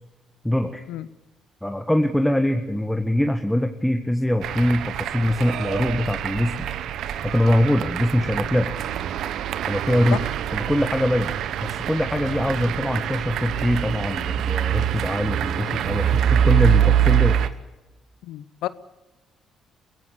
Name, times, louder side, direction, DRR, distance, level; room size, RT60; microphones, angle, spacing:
voice 1, 0.4-0.8 1.6-6.7 7.2-8.7 9.7-10.2 10.5-11.3 11.6-17.4, left 1 dB, 5° left, 1.6 m, -23 dB
sound 1, 4.4-17.5, right 10 dB, 70° right, 1.1 m, -24 dB
voice 2, 18.2-18.7, left 14 dB, 75° left, 0.7 m, -30 dB
24.5 x 16.0 x 8.5 m
hypercardioid pair, 50°, 0 cm